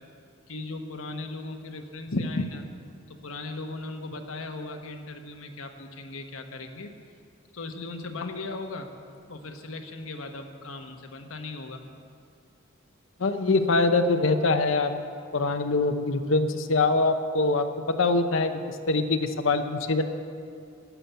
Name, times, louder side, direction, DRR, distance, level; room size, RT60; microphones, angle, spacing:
voice 1, 0.5-2.7 3.1-7.0 7.5-8.9 9.3-11.8, left 3 dB, 85° left, 5 dB, 1.1 m, -38 dB
voice 2, 13.2-14.9 15.3-20.0, left 3 dB, 70° left, 8 dB, 0.8 m, -24 dB
12.0 x 6.9 x 9.1 m, 2.3 s
head